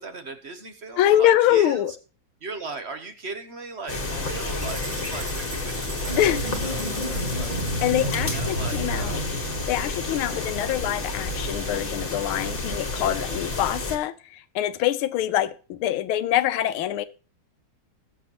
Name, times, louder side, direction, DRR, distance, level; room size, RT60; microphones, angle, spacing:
voice 1, 0.0-1.8 2.4-6.2 6.5-7.8 8.2-9.2, right 4 dB, 45° right, 0.9 m, -38 dB
voice 2, 1.0-1.9 6.2-6.5 7.8-9.2 9.7-17.1, left 12 dB, 85° left, 1.6 m, -24 dB
sound 1, 3.9-14.0, left 2 dB, 30° left, 1.6 m, -30 dB
sound 2, 4.5-8.2, right 3 dB, 65° right, 3.2 m, -41 dB
sound 3, 6.1-10.3, right 1 dB, 25° right, 1.7 m, -31 dB
20.0 x 7.0 x 3.0 m
omnidirectional pair, 2.3 m